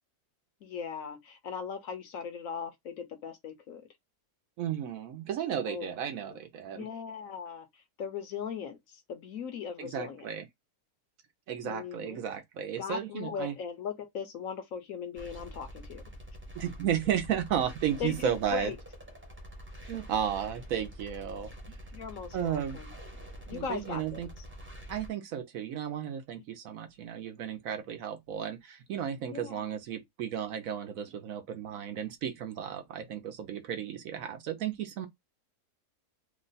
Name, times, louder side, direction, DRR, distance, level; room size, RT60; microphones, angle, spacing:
voice 1, 0.6-3.9 5.6-6.4 6.7-10.3 11.6-12.2 12.8-16.0 18.0-18.8 21.9-22.9 23.5-24.4 29.3-29.7, left 7 dB, 65° left, 0.9 m, -39 dB
voice 2, 4.6-6.9 9.8-10.4 11.5-13.5 16.5-18.7 19.9-21.8 22.3-22.8 23.5-24.3 24.9-35.1, right 9 dB, 70° right, 1.0 m, -34 dB
sound 1, 15.1-25.1, equal, 15° right, 0.4 m, -46 dB
3.0 x 2.2 x 3.9 m
omnidirectional pair, 1.7 m